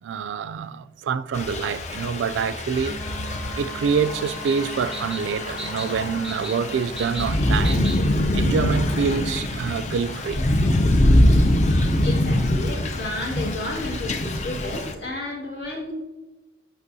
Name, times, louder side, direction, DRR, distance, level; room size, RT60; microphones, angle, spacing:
voice 1, 0.0-3.0 3.6-8.0 8.3-10.4, right 6 dB, 85° right, 0.3 m, -26 dB
Thunder / Rain, 1.3-14.9, left 1 dB, 40° left, 0.5 m, -23 dB
Wind instrument woodwind instrument, 2.8-7.6, right 4 dB, 15° left, 1.4 m, -40 dB
sound 1, 4.2-8.2, right 1 dB, 5° right, 0.7 m, -39 dB
voice 2, 12.0-15.9, left 2 dB, 65° left, 2.0 m, -32 dB
8.0 x 6.1 x 2.7 m
head